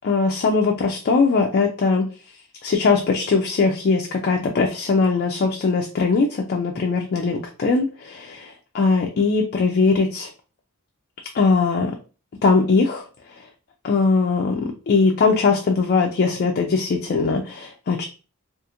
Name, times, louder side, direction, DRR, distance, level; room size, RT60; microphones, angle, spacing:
voice 1, 0.0-2.1 2.6-10.3 11.3-11.9 12.4-13.0 13.8-18.0, left 4 dB, 50° left, 2 dB, 0.4 m, -20 dB
2.5 x 2.4 x 2.8 m, 0.35 s
head